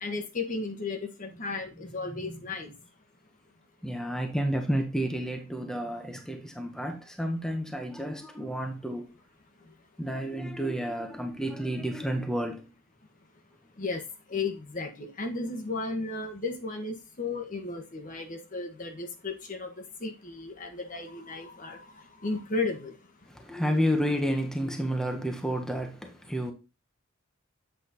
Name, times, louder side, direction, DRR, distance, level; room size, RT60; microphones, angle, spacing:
voice 1, 0.0-2.7 13.8-14.0 14.3-21.8 22.2-22.9, left 3 dB, 40° left, 1.1 m, -34 dB
voice 2, 2.1-2.4 3.8-9.1 10.0-12.8 23.3-26.5, equal, 5° left, 0.9 m, -31 dB
7.9 x 4.1 x 4.1 m
head